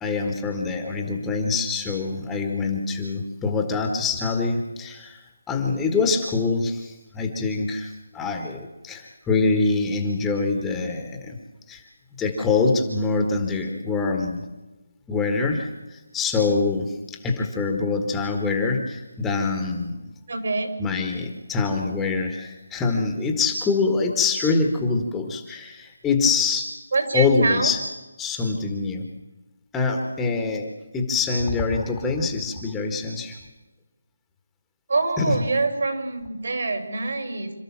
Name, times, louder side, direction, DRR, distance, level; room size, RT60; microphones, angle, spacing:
voice 1, 0.0-5.2 5.5-11.4 11.7-11.8 12.2-14.4 15.1-20.0 20.8-26.7 27.1-27.8 28.2-29.0 29.7-33.4 35.2-35.3, left 4 dB, 5° left, 3 dB, 1.5 m, -25 dB
voice 2, 20.3-20.7 26.9-27.7 34.9-37.5, right 3 dB, 65° right, 6 dB, 5.4 m, -25 dB
27.5 x 13.0 x 7.3 m, 1.1 s
figure-of-eight pair, 170°, 0 cm